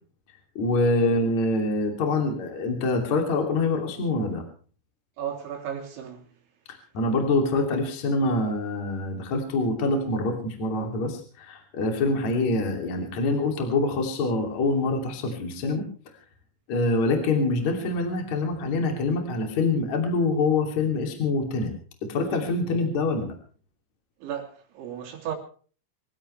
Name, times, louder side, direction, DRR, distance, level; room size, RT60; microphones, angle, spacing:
voice 1, 0.6-4.4 6.7-15.9 16.7-21.7 22.0-23.3, left 2 dB, 40° left, 3.6 m, -25 dB
voice 2, 5.2-6.2 24.2-25.4, right 9 dB, 70° right, 5.5 m, -34 dB
25.5 x 15.5 x 3.3 m
omnidirectional pair, 5.6 m